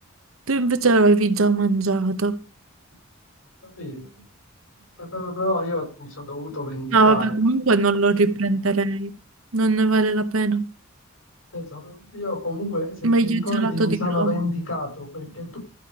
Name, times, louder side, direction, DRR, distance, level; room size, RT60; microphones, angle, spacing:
voice 1, 0.5-2.4 6.9-9.1 9.5-10.6 13.0-14.4, right 3 dB, 85° right, 1.0 m, -20 dB
voice 2, 3.6-4.2 5.0-7.4 11.5-15.6, left 1 dB, 90° left, 6.3 m, -29 dB
14.0 x 5.1 x 6.8 m
head